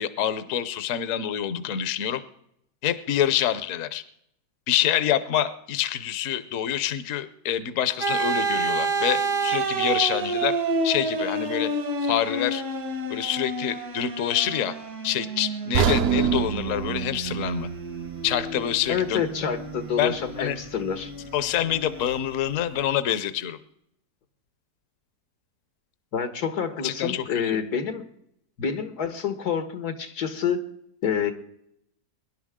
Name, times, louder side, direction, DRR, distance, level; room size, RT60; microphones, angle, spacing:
voice 1, 0.0-2.2 2.8-4.0 4.7-10.6 10.8-11.7 12.0-12.6 13.1-14.8 15.0-17.7 18.2-19.2 20.0-20.6 21.3-23.6 26.8-27.6, left 10 dB, 60° left, 13 dB, 1.1 m, -26 dB
sound 1, 8.0-22.6, right 3 dB, 70° right, 2.0 m, -30 dB
sound 2, 15.7-19.8 20.2-20.3 20.9-21.0, right 7 dB, 55° right, 0.7 m, -28 dB
voice 2, 18.9-21.1 26.1-28.0 28.6-30.6 31.0-31.3, left 7 dB, 85° left, 8 dB, 1.9 m, -28 dB
23.5 x 11.0 x 3.7 m, 0.74 s
omnidirectional pair, 1.6 m